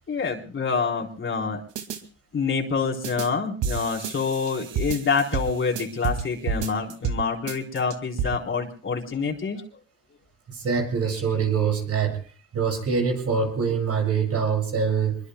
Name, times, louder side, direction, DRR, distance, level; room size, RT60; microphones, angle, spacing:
voice 1, 0.1-1.6 2.3-9.6, left 5 dB, 40° left, 0 dB, 3.9 m, -27 dB
sound 1, 1.8-2.0 3.0-3.3 3.6-6.2 6.5-7.2 7.5-8.3, right 6 dB, 85° right, 2.2 m, -29 dB
voice 2, 10.5-12.2 12.5-15.2, right 6 dB, 55° right, 3 dB, 7.8 m, -24 dB
26.0 x 22.5 x 2.2 m, 0.37 s
cardioid pair, 90°, 30 cm